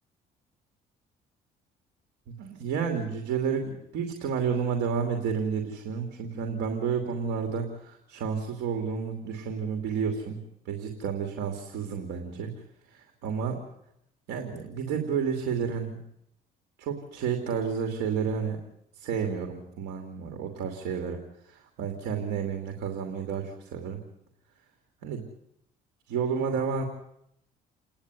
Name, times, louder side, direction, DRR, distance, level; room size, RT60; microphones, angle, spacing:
voice 1, 2.3-12.5 12.9-13.6 14.3-16.0 16.8-18.6 19.0-21.2 21.4-24.0 25.0-25.2 26.1-26.8, right 6 dB, 85° right, 5 dB, 2.8 m, -31 dB
29.0 x 10.5 x 9.6 m, 0.78 s
cardioid pair, 110°, 17 cm